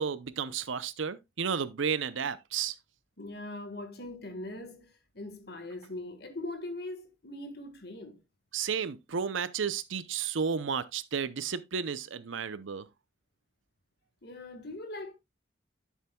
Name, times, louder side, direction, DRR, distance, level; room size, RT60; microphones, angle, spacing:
voice 1, 0.0-2.8 8.5-12.9, right 6 dB, 85° right, 0.6 m, -32 dB
voice 2, 3.2-8.2 14.2-15.1, left 2 dB, 55° left, 1.6 m, -41 dB
10.5 x 7.3 x 2.3 m
head